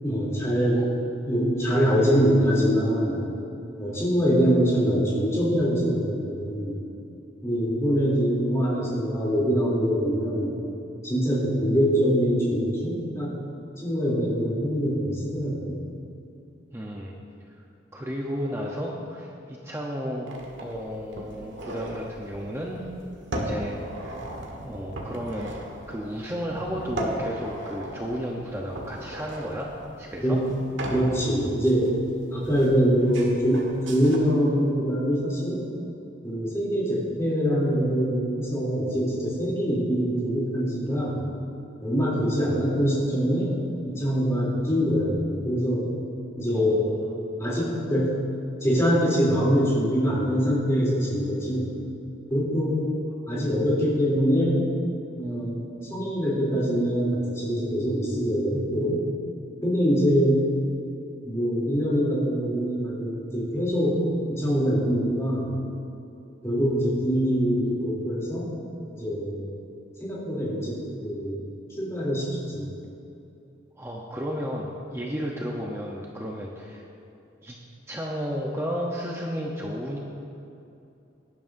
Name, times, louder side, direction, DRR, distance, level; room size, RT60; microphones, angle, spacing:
voice 1, 0.0-0.8 1.2-3.2 3.8-6.8 7.4-10.5 11.0-13.4 13.8-15.7 30.2-30.4 30.9-31.9 32.3-35.6 36.2-41.2 41.8-43.6 43.8-45.8 46.4-46.9 47.4-48.2 48.6-51.7 52.3-52.9 53.3-54.7 55.2-59.0 59.6-60.4 61.2-64.0 64.3-65.5 66.4-68.5 68.9-69.4 70.0-71.4 71.8-72.7, equal, 15° left, -7 dB, 3.0 m, -24 dB
voice 2, 16.7-17.2 17.9-20.3 20.6-22.8 23.3-23.8 24.6-25.5 25.9-29.7 30.0-30.4 46.5-47.4 73.8-76.8 77.4-77.6 77.9-80.0, equal, 15° right, -2 dB, 0.8 m, -33 dB
sound 1, 20.3-34.2, right 1 dB, 70° right, 1.6 m, -37 dB
18.0 x 11.0 x 2.6 m, 2.8 s
head